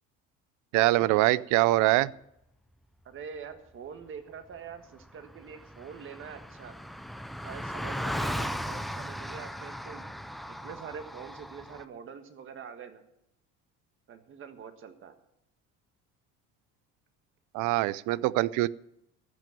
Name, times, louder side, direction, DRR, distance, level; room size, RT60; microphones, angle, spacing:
voice 1, 0.7-2.1 17.5-18.7, right 18 dB, 70° right, 20 dB, 0.5 m, -23 dB
voice 2, 3.0-6.7 7.4-10.1 10.5-13.0 14.1-15.1, right 7 dB, 40° right, 8 dB, 1.6 m, -44 dB
Car passing by, 4.7-4.8 5.0-11.8, equal, ahead, 0.4 m, -37 dB
14.0 x 6.2 x 9.2 m, 0.79 s
cardioid pair, 135°, 31 cm